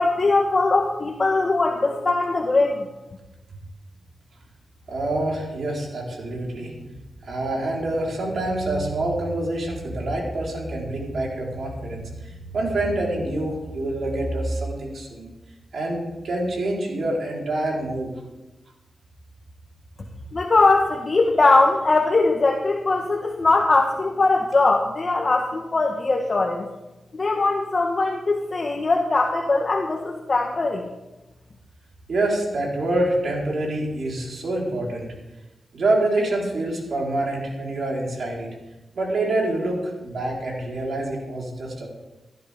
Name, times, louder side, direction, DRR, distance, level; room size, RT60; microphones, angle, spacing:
voice 1, 0.0-2.9 20.3-26.7 27.1-30.9, left 3 dB, 45° left, 1 dB, 1.3 m, -20 dB
voice 2, 4.9-6.9 7.2-15.3 15.7-18.1 32.1-35.1 35.7-38.5 39.0-41.9, right 2 dB, 75° right, -2 dB, 4.2 m, -26 dB
17.0 x 12.5 x 3.6 m, 1.0 s
cardioid pair, 75°, 0 cm